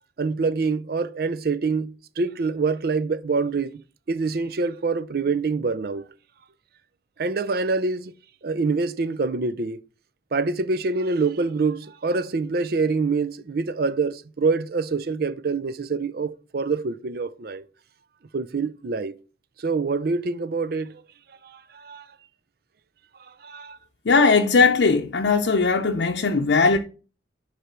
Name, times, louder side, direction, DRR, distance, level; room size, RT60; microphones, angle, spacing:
voice 1, 0.2-3.8 4.1-6.0 7.2-8.1 8.4-9.8 10.3-17.6 18.3-19.1 19.6-21.0 21.4-22.1 23.4-23.8, right 4 dB, 55° right, 0.5 m, -25 dB
voice 2, 24.1-26.8, left 4 dB, 80° left, 0.6 m, -19 dB
8.0 x 3.4 x 5.9 m
head